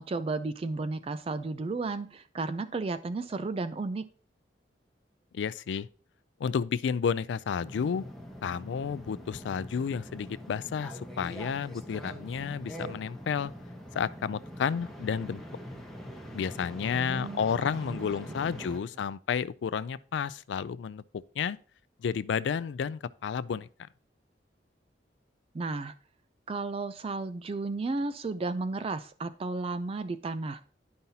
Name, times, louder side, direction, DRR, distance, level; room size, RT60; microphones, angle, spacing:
voice 1, 0.0-4.1 16.9-18.0 18.6-18.7 25.5-25.9 26.5-30.6, right 3 dB, 30° right, 0.3 m, -33 dB
voice 2, 5.3-5.9 6.4-8.0 8.4-13.5 13.9-15.4 16.3-21.0 21.4-21.6 22.0-23.7, left 7 dB, 85° left, 0.3 m, -31 dB
sound 1, 7.6-18.8, equal, ahead, 1.1 m, -43 dB
10.5 x 5.5 x 2.7 m
head